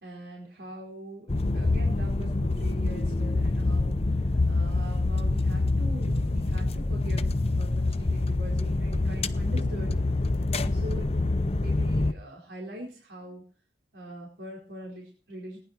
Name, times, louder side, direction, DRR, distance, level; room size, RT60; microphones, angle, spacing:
voice 1, 0.0-4.0 4.5-7.3 7.6-10.0 10.5-11.2 11.6-13.4 13.9-15.6, equal, 80° right, -2 dB, 4.6 m, -42 dB
sound 1, 1.3-12.1, left 2 dB, 35° left, 0.7 m, -26 dB
19.5 x 10.5 x 4.5 m, 0.38 s
head